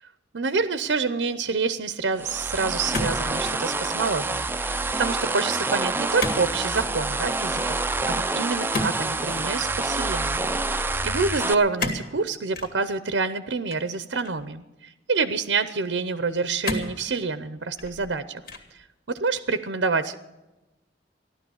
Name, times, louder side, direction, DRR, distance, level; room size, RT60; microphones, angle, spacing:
voice 1, 0.3-7.8 8.1-10.4 10.7-18.4 19.1-20.2, right 4 dB, 85° right, 12 dB, 0.7 m, -27 dB
sound 1, 2.2-11.5, right 3 dB, 10° right, 0.5 m, -27 dB
sound 2, 2.9-3.7 4.0-4.5 6.2-6.5 6.7-7.0 8.7-9.5 11.8-12.1 12.5-12.7 13.7-14.5 15.2-15.3 16.6-17.0 17.6-18.1 18.5-18.8, left 2 dB, 60° left, 2.3 m, -31 dB
15.0 x 12.0 x 7.1 m, 1.0 s
head